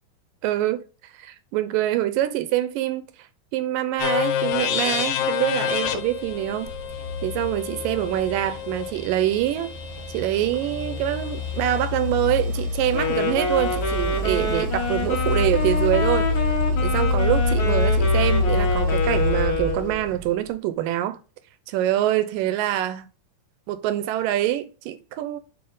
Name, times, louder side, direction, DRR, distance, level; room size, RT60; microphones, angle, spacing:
voice 1, 0.4-0.8 1.1-3.1 3.5-6.7 7.2-9.7 10.1-16.5 16.8-21.2 21.7-23.1 23.7-25.4, right 13 dB, 80° right, 2.1 m, -25 dB
sound 1, 4.0-11.9, left 9 dB, 90° left, 2.6 m, -29 dB
sound 2, 6.1-20.5, left 2 dB, 60° right, 1.5 m, -26 dB
Wind instrument woodwind instrument, 12.9-20.0, left 4 dB, 60° left, 2.9 m, -27 dB
7.7 x 3.9 x 3.8 m
omnidirectional pair, 4.2 m